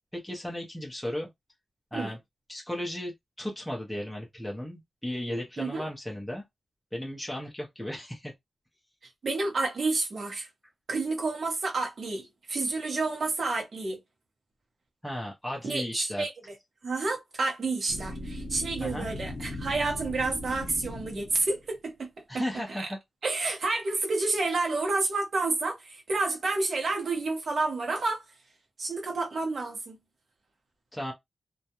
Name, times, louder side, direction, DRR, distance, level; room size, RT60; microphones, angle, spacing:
voice 1, 0.1-1.3 1.9-2.2 2.5-6.4 6.9-8.3 15.0-16.2 18.8-19.1 22.3-23.0 30.9-31.1, left 1 dB, 5° left, 0.5 m, -35 dB
voice 2, 9.2-10.5 10.9-14.0 15.6-16.3 16.8-22.1 22.3-22.4 22.8-22.9 23.2-28.2 28.8-30.0, right 3 dB, 60° right, 0.8 m, -29 dB
sound 1, 17.9-21.6, left 1 dB, 85° left, 0.7 m, -38 dB
2.3 x 2.1 x 2.8 m
wide cardioid pair, 155°, 0 cm